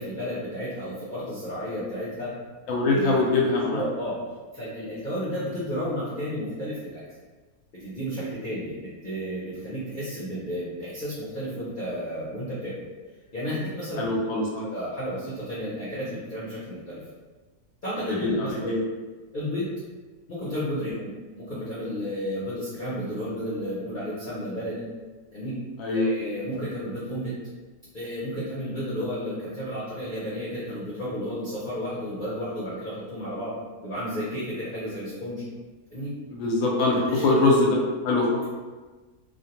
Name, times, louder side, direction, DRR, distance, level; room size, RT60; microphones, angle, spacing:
voice 1, 0.0-2.3 2.9-3.2 3.7-4.2 4.5-7.0 7.8-12.7 13.3-14.1 14.5-17.0 17.8-18.8 19.3-19.7 20.3-24.8 25.3-25.6 25.9-27.3 27.9-33.6 33.8-35.4 35.9-36.1 37.1-37.3, equal, 50° left, -10 dB, 0.6 m, -32 dB
voice 2, 2.7-3.8 14.0-14.7 18.1-18.3 18.6-18.8 25.8-26.1 36.3-37.8 38.0-38.4, left 2 dB, 70° left, -2 dB, 0.9 m, -23 dB
2.5 x 2.1 x 2.8 m, 1.3 s
omnidirectional pair, 1.7 m